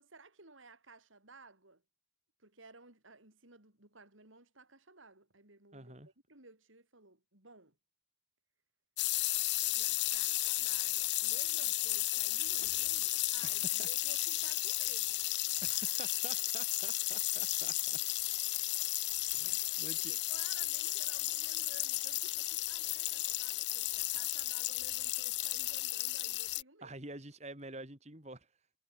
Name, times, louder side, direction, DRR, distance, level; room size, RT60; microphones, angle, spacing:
voice 1, 0.0-1.8 2.4-7.8 9.7-15.2 19.5-19.7 19.9-27.0, right 3 dB, 80° right, 5.7 m, -57 dB
voice 2, 5.7-6.1 13.4-13.9 15.6-18.0 19.3-20.2 26.8-28.5, right 2 dB, 35° right, 3.4 m, -48 dB
sound 1, 9.0-26.6, left 18 dB, 60° left, 0.6 m, -34 dB
head